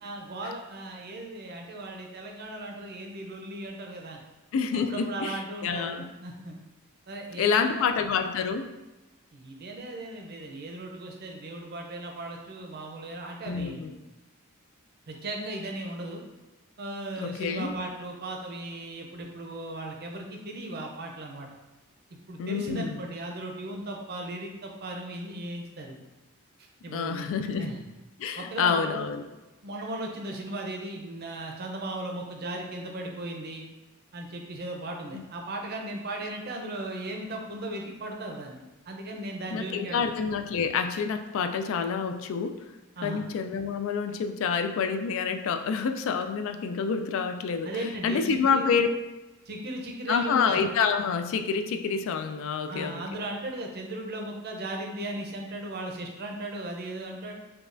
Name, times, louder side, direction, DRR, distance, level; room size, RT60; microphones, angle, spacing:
voice 1, 0.0-4.2 4.9-6.5 7.1-7.9 9.3-13.9 15.1-16.2 16.8-21.5 22.3-26.0 26.8-27.3 27.6-27.8 28.4-29.1 29.6-33.6 34.1-38.6 38.9-40.1 43.0-43.2 47.6-48.7 49.5-50.6 52.7-57.3, right 1 dB, 50° right, 1 dB, 0.6 m, -37 dB
voice 2, 4.5-6.1 7.4-8.7 13.4-14.0 17.2-17.8 22.4-23.0 26.9-27.8 28.2-29.3 35.1-35.2 39.5-42.6 43.0-48.9 50.1-53.0, left 6 dB, 65° left, 7 dB, 0.3 m, -28 dB
5.1 x 2.3 x 2.5 m, 1.1 s
head